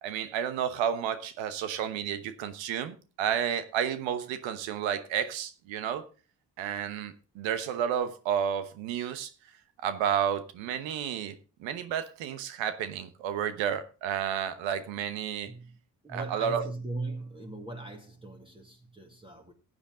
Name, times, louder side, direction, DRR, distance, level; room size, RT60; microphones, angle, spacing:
voice 1, 0.0-6.0 6.6-9.3 9.8-11.3 11.6-15.5 16.1-16.7, right 9 dB, 75° right, 1.1 m, -31 dB
voice 2, 15.5-15.8 16.0-19.5, right 2 dB, 10° right, 2.2 m, -39 dB
15.0 x 8.1 x 3.8 m
hypercardioid pair, 50°, 46 cm